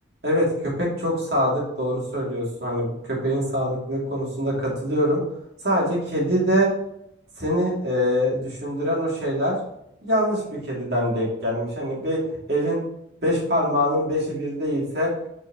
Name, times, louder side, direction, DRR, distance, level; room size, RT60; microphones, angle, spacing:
voice 1, 0.2-5.2 5.6-6.7 7.4-9.6 10.0-12.2 12.5-12.8 13.2-15.1, equal, 60° right, -4 dB, 2.7 m, -24 dB
7.0 x 6.1 x 3.0 m, 0.78 s
head